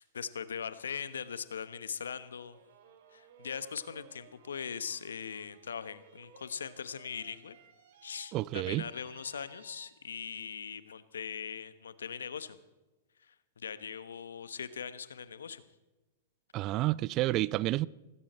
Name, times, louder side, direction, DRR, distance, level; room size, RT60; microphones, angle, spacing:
voice 1, 0.0-2.6 3.1-7.6 8.0-12.6 13.2-15.6, left 7 dB, 80° left, 1.1 m, -40 dB
sound 1, 2.1-10.3, right 6 dB, 60° right, 2.8 m, -59 dB
voice 2, 8.3-8.8 16.5-17.9, right 17 dB, 40° right, 0.5 m, -30 dB
18.5 x 16.5 x 4.4 m
hypercardioid pair, 110°, 0 cm